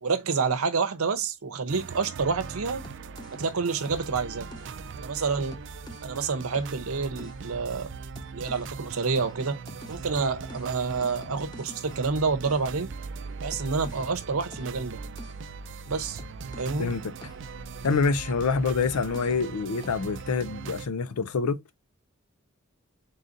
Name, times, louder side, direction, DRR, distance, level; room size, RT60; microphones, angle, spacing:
voice 1, 0.0-2.8 3.3-4.5 5.0-5.6 6.0-7.9 8.3-9.6 9.9-12.9 13.4-15.0 15.9-16.2 16.6-16.9, right 4 dB, 75° right, 0.7 m, -28 dB
sound 1, 1.7-20.9, right 5 dB, 55° right, 0.4 m, -41 dB
sound 2, 2.2-6.1 6.5-8.9 9.2-16.9 17.2-19.6 19.8-20.2, equal, 20° left, 0.5 m, -46 dB
voice 2, 16.8-17.1 17.8-21.8, left 4 dB, 90° left, 0.5 m, -26 dB
3.9 x 3.8 x 2.5 m
head